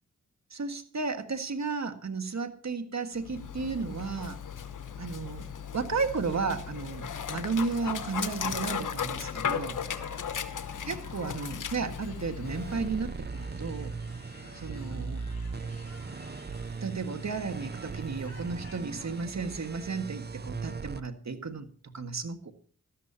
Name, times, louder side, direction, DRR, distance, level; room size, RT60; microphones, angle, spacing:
voice 1, 0.5-4.4 5.0-5.5 5.7-9.8 10.9-13.9 14.5-15.2 16.8-22.5, right 4 dB, 60° right, 7 dB, 1.7 m, -33 dB
Dog, 3.2-13.1, left 7 dB, 80° left, 1.1 m, -36 dB
sound 1, 9.4-19.8, left 4 dB, 55° left, 5.0 m, -52 dB
sound 2, 12.4-21.0, right 4 dB, 35° right, 0.6 m, -39 dB
18.5 x 13.5 x 2.9 m, 0.42 s
cardioid pair, 45°, 31 cm